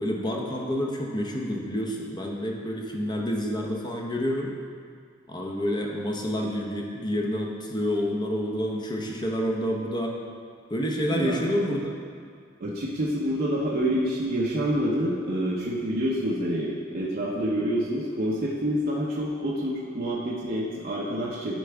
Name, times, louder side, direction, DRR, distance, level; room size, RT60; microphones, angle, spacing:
voice 1, 0.0-4.5 5.3-10.2 10.7-11.9, equal, 20° left, -1 dB, 0.8 m, -28 dB
voice 2, 12.6-21.6, equal, 50° right, -5 dB, 0.7 m, -27 dB
10.0 x 4.6 x 3.4 m, 2.2 s
head